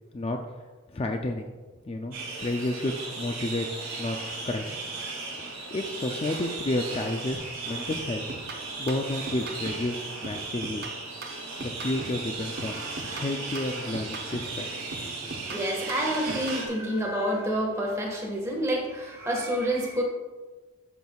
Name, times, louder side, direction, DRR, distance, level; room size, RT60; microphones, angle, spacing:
voice 1, 0.9-1.5 1.9-3.7 4.0-4.2 4.5-4.8 5.5-8.3 8.5-10.9 11.6-12.8 13.1-14.7 15.0-15.2, left 1 dB, 25° left, 3 dB, 0.4 m, -31 dB
sound 1, 2.1-16.7, right 3 dB, 75° right, 2.4 m, -36 dB
sound 2, 7.3-7.6 7.9-9.9 10.2-12.3 12.6-14.6 14.9-16.7, right 2 dB, 50° right, 0.8 m, -41 dB
voice 2, 15.4-20.0, right 1 dB, 15° right, -2 dB, 1.5 m, -28 dB
12.5 x 6.0 x 2.3 m, 1.3 s
head